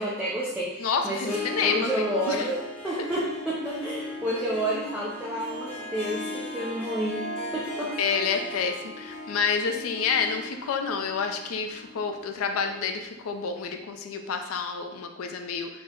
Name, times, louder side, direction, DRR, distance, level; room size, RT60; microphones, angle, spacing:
voice 1, 0.0-8.0, equal, 5° right, -7 dB, 0.4 m, -30 dB
voice 2, 0.8-2.5 8.0-15.7, left 5 dB, 70° left, 5 dB, 0.4 m, -29 dB
Harp, 1.2-13.0, equal, 25° left, 0.7 m, -38 dB
3.3 x 2.0 x 3.6 m, 0.95 s
head